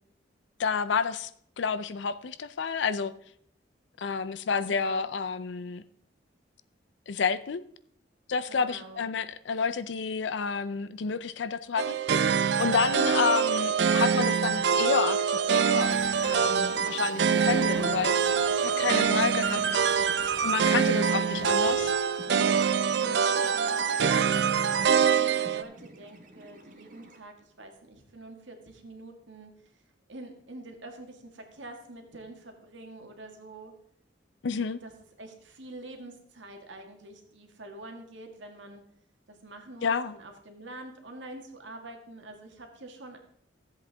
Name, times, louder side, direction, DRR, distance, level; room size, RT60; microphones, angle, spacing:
voice 1, 0.6-1.3 1.6-3.1 4.0-5.8 7.1-7.6 8.3-12.0 12.6-18.1 18.6-19.8 20.4-22.0 34.4-34.8 39.8-40.1, left 5 dB, 75° left, 13 dB, 0.5 m, -30 dB
voice 2, 4.6-5.1 8.5-9.1 17.4-18.1 18.7-19.0 20.8-21.3 22.9-24.3 24.8-29.5 30.1-33.7 34.8-34.9 35.2-38.8 39.3-43.2, right 1 dB, 85° right, 4 dB, 1.7 m, -45 dB
sound 1, 11.8-25.6, right 6 dB, 70° right, 0.4 m, -25 dB
sound 2, 15.8-27.2, right 2 dB, 45° right, 1.0 m, -46 dB
14.0 x 7.9 x 3.4 m, 0.66 s
head